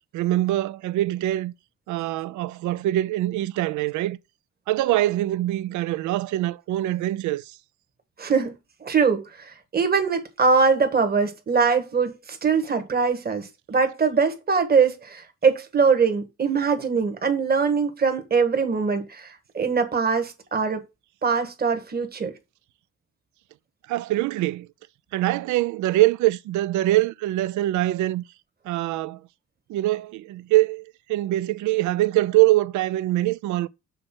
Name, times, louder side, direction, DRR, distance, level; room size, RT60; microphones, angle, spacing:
voice 1, 0.1-1.5 1.9-4.2 4.7-7.6 23.9-24.7 25.1-28.2 28.6-29.2 29.7-33.7, right 16 dB, 75° right, 0.4 m, -23 dB
voice 2, 8.2-8.5 8.8-20.8 21.2-22.3, right 5 dB, 30° right, 1.4 m, -22 dB
6.6 x 3.2 x 5.8 m
cardioid pair, 90°, 30 cm